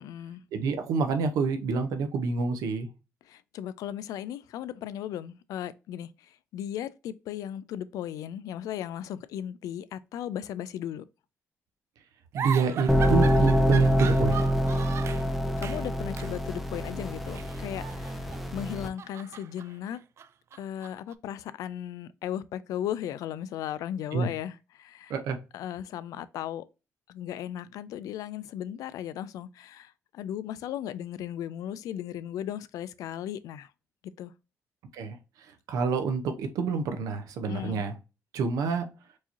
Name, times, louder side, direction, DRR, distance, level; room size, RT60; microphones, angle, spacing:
voice 1, 0.0-0.4 3.2-11.0 15.6-20.0 20.6-25.1 25.5-26.6 27.1-33.7 34.0-34.3 37.5-37.8, left 10 dB, 80° left, 0.3 m, -36 dB
voice 2, 0.5-2.9 12.3-14.4 24.1-24.3 25.1-25.4 34.9-35.2 35.7-37.9 38.3-38.8, right 5 dB, 85° right, 0.7 m, -28 dB
sound 1, 12.3-15.3 15.6-15.9 16.2-16.4 17.3-18.4 18.8-21.1, right 8 dB, 50° right, 0.3 m, -38 dB
sound 2, 12.9-18.9, equal, ahead, 0.6 m, -26 dB
4.6 x 2.9 x 2.6 m
cardioid pair, 130°, 6 cm